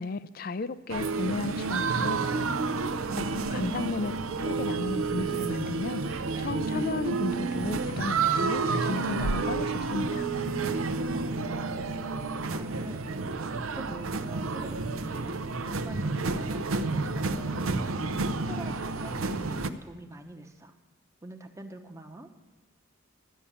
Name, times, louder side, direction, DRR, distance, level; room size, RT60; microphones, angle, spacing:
voice 1, 0.0-2.4 3.1-4.1 4.4-10.3, left 3 dB, 45° left, 15 dB, 0.4 m, -34 dB
sound 1, 0.9-19.7, right 4 dB, 90° right, 0.7 m, -30 dB
voice 2, 3.0-3.6 10.8-12.1 12.5-17.9 18.4-20.7 21.2-22.3, right 2 dB, 15° right, 4 dB, 0.9 m, -45 dB
12.5 x 7.1 x 10.0 m, 1.1 s
head